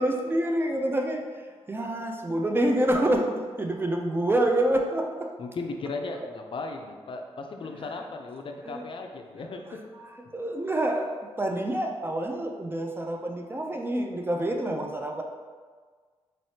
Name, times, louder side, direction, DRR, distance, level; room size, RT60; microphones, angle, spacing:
voice 1, 0.0-5.3 8.0-8.1 8.6-8.8 9.7-11.1 11.4-15.2, right 1 dB, 20° right, 2 dB, 0.4 m, -27 dB
voice 2, 5.4-9.6, left 3 dB, 50° left, 4 dB, 0.4 m, -36 dB
4.0 x 3.2 x 2.8 m, 1.5 s
cardioid pair, 85°, 11 cm